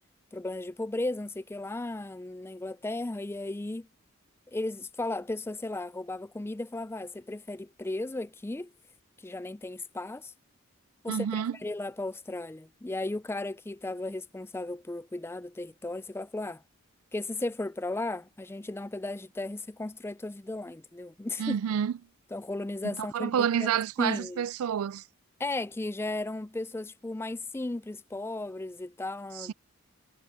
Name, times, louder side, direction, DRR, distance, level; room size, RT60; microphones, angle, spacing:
voice 1, 0.3-3.9 4.5-8.7 9.2-10.3 11.0-16.6 17.1-21.6 22.3-23.7 24.0-24.4 25.4-29.5, left 2 dB, 10° left, 0.3 m, -35 dB
voice 2, 11.1-11.6 21.4-21.9 22.8-25.0 29.4-29.5, right 8 dB, 80° right, 0.3 m, -29 dB
head